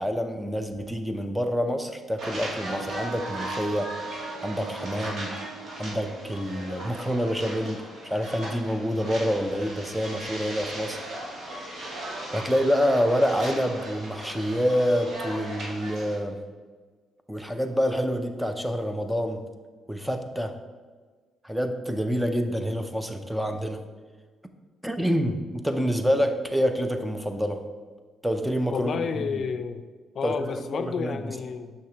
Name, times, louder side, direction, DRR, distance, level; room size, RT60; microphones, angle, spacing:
voice 1, 0.0-3.9 4.4-5.3 5.8-11.0 12.3-16.4 17.3-19.4 19.9-20.5 21.4-23.8 24.8-27.6 28.2-29.0 29.3-29.4 30.2-31.3, equal, 5° right, 7 dB, 0.6 m, -27 dB
sound 1, 2.2-16.2, right 1 dB, 60° right, 1.7 m, -38 dB
Wind instrument woodwind instrument, 2.7-6.8, right 5 dB, 85° right, 0.5 m, -40 dB
voice 2, 28.7-29.8 30.1-31.7, left 6 dB, 55° left, 10 dB, 0.4 m, -30 dB
6.5 x 5.8 x 3.0 m, 1.5 s
cardioid pair, 90°, 0 cm